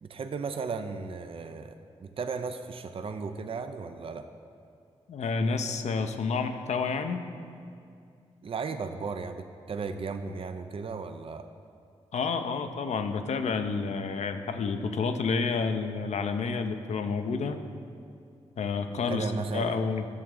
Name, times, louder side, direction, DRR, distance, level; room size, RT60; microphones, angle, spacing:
voice 1, 0.0-4.3 8.4-11.5 18.9-19.8, right 4 dB, 50° right, 8 dB, 0.5 m, -35 dB
voice 2, 5.1-7.2 12.1-17.6 18.6-20.1, left 4 dB, 70° left, 8 dB, 0.6 m, -29 dB
11.0 x 7.0 x 3.8 m, 2.4 s
supercardioid pair, 45°, 12 cm